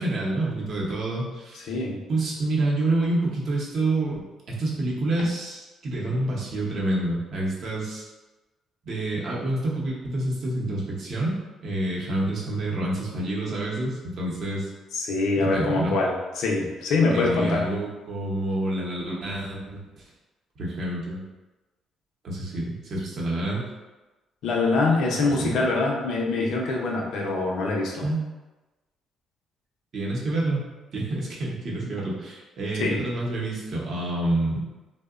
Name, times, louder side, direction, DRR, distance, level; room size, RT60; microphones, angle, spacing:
voice 1, 0.0-1.7 2.1-4.2 4.5-8.1 8.9-11.3 11.6-14.7 15.4-15.9 17.1-20.0 20.6-21.2 22.2-23.6 25.4-25.6 28.0-28.2 29.9-30.7 30.9-34.6, right 2 dB, 50° right, -4 dB, 0.7 m, -28 dB
voice 2, 1.5-2.0 14.9-17.6 24.4-28.0 32.8-33.0, left 3 dB, 75° left, -1 dB, 0.5 m, -24 dB
2.7 x 2.0 x 2.3 m, 1.1 s
cardioid pair, 120°, 0 cm